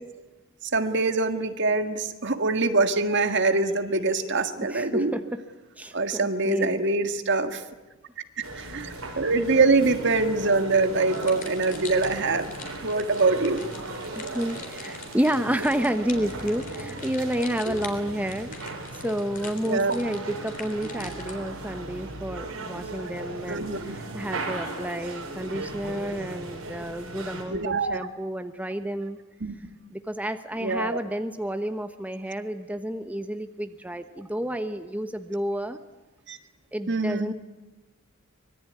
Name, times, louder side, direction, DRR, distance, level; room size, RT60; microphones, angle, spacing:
voice 1, 0.7-5.1 5.9-7.6 8.6-12.5 12.8-13.7 17.7-17.8 19.6-20.0 23.5-24.0 27.5-28.1 29.4-29.6 30.6-31.0 36.3-36.4 36.9-37.3, right 3 dB, 55° right, 8 dB, 1.7 m, -24 dB
voice 2, 4.7-5.4 5.8-6.8 14.1-29.2 29.9-35.8 36.7-37.3, equal, 5° right, 8 dB, 0.9 m, -30 dB
sound 1, 8.4-27.4, right 2 dB, 90° right, 6.1 m, -37 dB
sound 2, 11.1-21.5, left 6 dB, 40° left, 3.6 m, -44 dB
25.0 x 22.0 x 9.5 m, 1.1 s
head